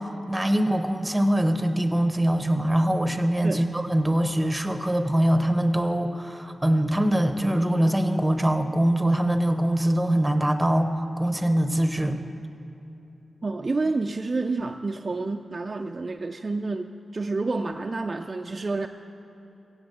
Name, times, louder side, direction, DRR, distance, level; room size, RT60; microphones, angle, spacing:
voice 1, 0.0-12.2, right 1 dB, 10° right, 8 dB, 0.9 m, -23 dB
voice 2, 13.4-18.9, right 3 dB, 40° right, 4 dB, 0.4 m, -29 dB
16.0 x 7.3 x 7.8 m, 2.9 s
wide cardioid pair, 85°, 0 cm